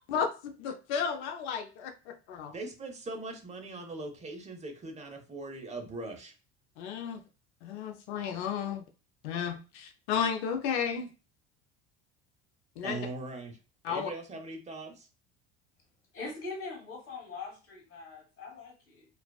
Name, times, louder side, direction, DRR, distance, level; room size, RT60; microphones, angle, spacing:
voice 1, 0.1-2.5 6.8-7.2 7.6-8.8 9.2-11.1 12.8-13.0 13.8-14.1, left 7 dB, 85° left, 0.5 m, -33 dB
voice 2, 2.5-6.3 12.8-13.6 13.9-15.1, right 2 dB, 20° right, 0.8 m, -40 dB
voice 3, 16.1-19.0, left 3 dB, 40° left, 1.4 m, -42 dB
2.3 x 2.3 x 2.3 m
hypercardioid pair, 80°, 34 cm